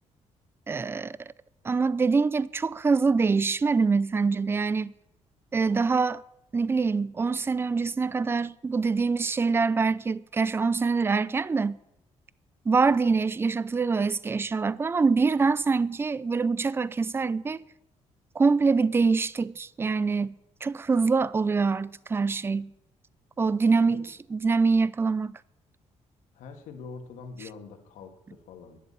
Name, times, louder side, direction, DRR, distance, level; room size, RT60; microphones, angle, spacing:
voice 1, 0.7-1.2 1.6-4.9 5.5-6.2 6.5-11.8 12.7-17.6 18.3-20.4 20.6-22.7 23.4-25.4, right 4 dB, 20° right, 0.4 m, -24 dB
voice 2, 26.3-28.8, left 5 dB, 90° left, 2.1 m, -44 dB
11.0 x 11.0 x 8.8 m
cardioid pair, 120°, 12 cm